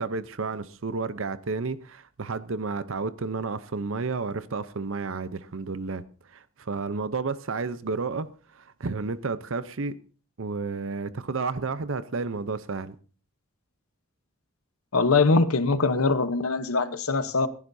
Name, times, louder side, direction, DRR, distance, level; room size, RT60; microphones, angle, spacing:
voice 1, 0.0-6.0 6.3-10.0 10.4-13.0, right 4 dB, 65° right, 0.7 m, -31 dB
voice 2, 14.9-17.5, left 3 dB, 80° left, 1.0 m, -22 dB
27.5 x 11.0 x 2.7 m
head